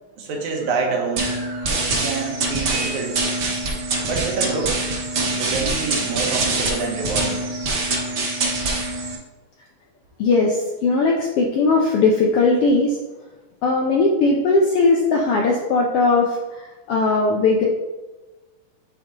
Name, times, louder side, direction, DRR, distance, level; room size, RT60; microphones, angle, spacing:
voice 1, 0.2-1.4 1.7-3.2 4.1-4.8 5.4-7.5, right 4 dB, 85° right, 0 dB, 2.5 m, -27 dB
sound 1, 1.2-9.2, right 2 dB, 60° right, 1.0 m, -24 dB
voice 2, 10.2-13.0 13.6-16.6 16.9-17.6, left 3 dB, 75° left, 0 dB, 1.3 m, -18 dB
8.8 x 4.0 x 3.7 m, 1.2 s
omnidirectional pair, 3.4 m